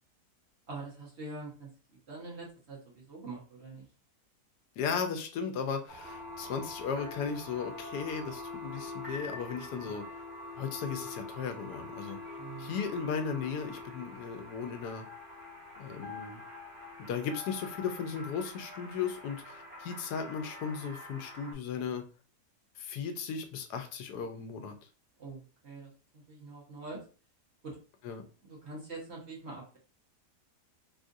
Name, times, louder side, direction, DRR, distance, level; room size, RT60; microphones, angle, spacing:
voice 1, 0.7-1.7 2.1-3.9 12.4-12.7 25.2-27.0 27.6-27.8 28.4-29.8, right 3 dB, 45° right, -3 dB, 1.1 m, -44 dB
voice 2, 4.8-10.1 10.6-12.2 12.6-15.1 15.8-16.4 17.1-22.0 22.8-24.7 28.0-28.2, left 6 dB, 85° left, 7 dB, 1.2 m, -36 dB
sound 1, 5.9-21.5, left 2 dB, 5° right, 1.0 m, -45 dB
3.7 x 2.4 x 2.6 m, 0.36 s
omnidirectional pair, 1.7 m